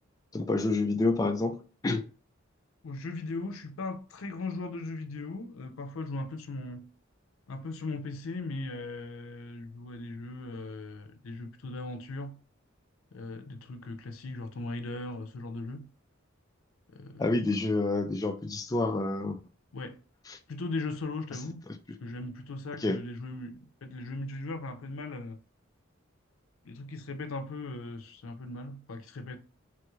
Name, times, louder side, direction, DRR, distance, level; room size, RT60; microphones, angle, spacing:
voice 1, 0.3-2.0 17.2-19.4 20.3-20.4 22.8-23.0, left 2 dB, 20° left, 0.3 m, -28 dB
voice 2, 2.8-6.9 7.5-12.4 13.1-15.9 16.9-17.6 19.7-20.0 20.5-21.6 22.0-25.4 26.6-29.4, left 2 dB, 80° left, 0.6 m, -38 dB
3.3 x 2.3 x 3.1 m
head